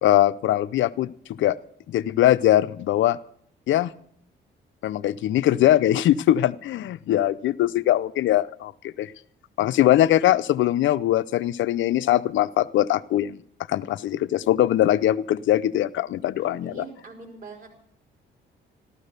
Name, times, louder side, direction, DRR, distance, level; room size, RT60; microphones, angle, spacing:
voice 1, 0.0-1.6 1.9-3.2 3.7-3.9 4.8-9.1 9.6-13.4 13.7-16.7, left 13 dB, 75° left, 16 dB, 0.6 m, -21 dB
voice 2, 16.4-17.7, right 3 dB, 45° right, 2 dB, 4.9 m, -43 dB
14.5 x 13.0 x 6.6 m, 0.65 s
cardioid pair, 90°, 20 cm